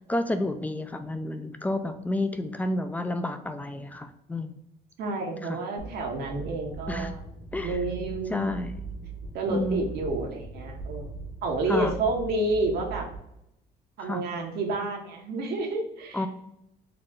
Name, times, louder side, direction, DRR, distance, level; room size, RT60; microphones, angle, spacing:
voice 1, 0.1-4.6 5.4-5.6 6.9-7.1 7.5-7.8 8.3-8.7 9.5-9.9 11.7-11.9 14.0-14.2 16.1-16.3, left 1 dB, 10° left, 8 dB, 0.3 m, -30 dB
voice 2, 5.0-7.2 7.6-8.5 9.3-11.1 11.4-13.1 14.0-16.2, right 2 dB, 70° right, 2 dB, 0.9 m, -29 dB
sound 1, 5.8-13.2, right 4 dB, 60° left, 1.2 m, -40 dB
3.9 x 2.2 x 3.6 m, 0.82 s
cardioid pair, 110°, 17 cm